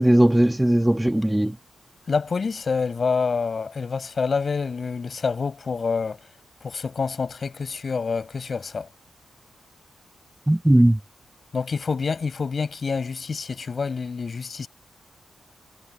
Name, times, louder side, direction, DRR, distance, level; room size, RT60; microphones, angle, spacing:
voice 1, 0.0-1.6 10.5-11.0, right 1 dB, 5° right, 1.5 m, -18 dB
voice 2, 2.1-6.2 6.6-8.9 11.5-14.7, left 5 dB, 45° left, 7.8 m, -27 dB
wide cardioid pair, 120°, 0 cm